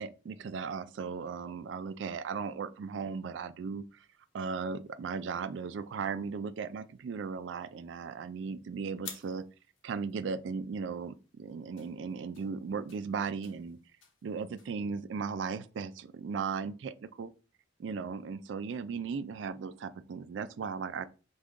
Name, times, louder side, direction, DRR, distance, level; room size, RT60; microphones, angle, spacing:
voice 1, 0.0-4.1 4.3-9.4 9.8-13.8 14.2-17.3 17.8-21.1, right 5 dB, 70° right, 0.3 m, -37 dB
sound 1, 4.0-14.8, left 6 dB, 90° left, 0.9 m, -56 dB
5.1 x 2.3 x 3.6 m
head